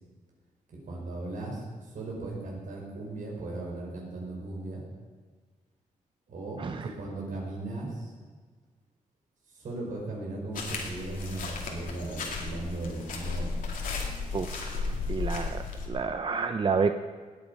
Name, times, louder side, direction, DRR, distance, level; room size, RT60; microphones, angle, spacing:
voice 1, 0.7-4.8 6.3-8.1 9.5-13.6, right 2 dB, 70° right, -2 dB, 5.0 m, -37 dB
voice 2, 6.6-6.9 14.3-16.9, right 5 dB, 35° right, 8 dB, 0.6 m, -30 dB
sound 1, 10.5-15.9, left 4 dB, 80° left, 2.5 m, -34 dB
18.0 x 9.0 x 5.4 m, 1.5 s
cardioid pair, 110°, 14 cm